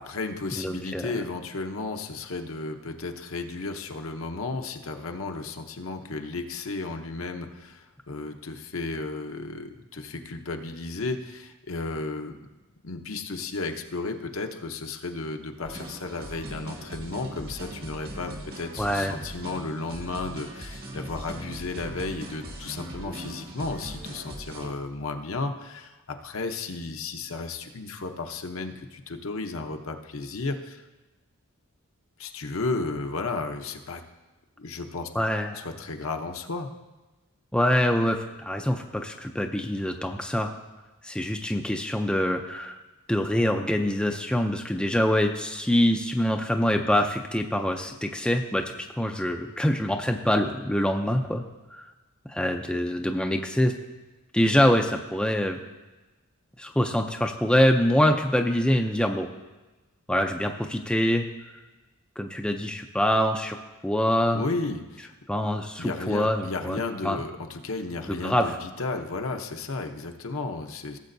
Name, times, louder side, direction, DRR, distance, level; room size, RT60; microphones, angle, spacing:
voice 1, 0.0-12.4 12.8-30.8 32.2-34.0 34.6-35.1 35.5-36.7 64.3-65.1 65.8-71.0, left 3 dB, 65° left, 5 dB, 0.8 m, -33 dB
voice 2, 0.6-1.1 18.8-19.1 35.1-35.6 37.5-40.5 41.0-42.7 43.1-51.4 51.7-51.9 52.3-53.7 54.3-55.6 56.6-59.3 60.1-61.3 62.2-63.6 63.8-64.4 65.3-67.2 68.1-68.5, equal, 5° left, 3 dB, 0.4 m, -25 dB
sound 1, 15.6-24.7, right 1 dB, 45° right, 1.2 m, -40 dB
17.0 x 7.5 x 2.6 m, 1.1 s
head